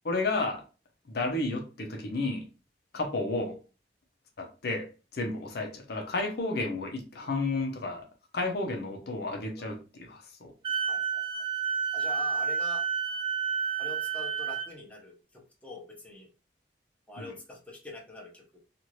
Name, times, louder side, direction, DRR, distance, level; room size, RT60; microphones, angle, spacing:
voice 1, 0.0-0.6 1.1-2.5 2.9-3.6 4.4-8.1 8.3-10.5 17.2-17.3, left 2 dB, 65° left, 0.6 m, -32 dB
Wind instrument woodwind instrument, 10.6-14.7, right 6 dB, 30° right, 0.8 m, -30 dB
voice 2, 10.9-11.2 11.9-12.9 13.8-16.3 17.1-18.6, left 1 dB, 10° left, 0.8 m, -44 dB
2.7 x 2.5 x 3.0 m
head